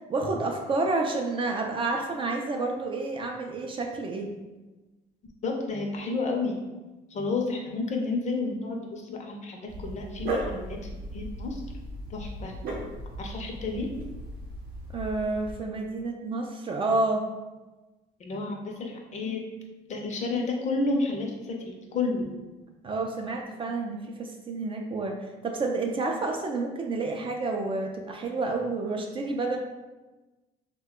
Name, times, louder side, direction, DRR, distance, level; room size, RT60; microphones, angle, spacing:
voice 1, 0.1-4.3 14.9-17.2 22.8-29.6, right 3 dB, 30° right, 2 dB, 0.4 m, -29 dB
voice 2, 5.4-6.6 7.1-10.8 11.1-11.6 12.1-12.5 13.2-13.9 18.2-19.4 19.9-22.2, left 3 dB, 45° left, 1 dB, 0.6 m, -31 dB
Dog, 9.7-15.6, right 1 dB, 65° right, 0.7 m, -36 dB
2.8 x 2.2 x 3.6 m, 1.1 s
cardioid pair, 110°, 17 cm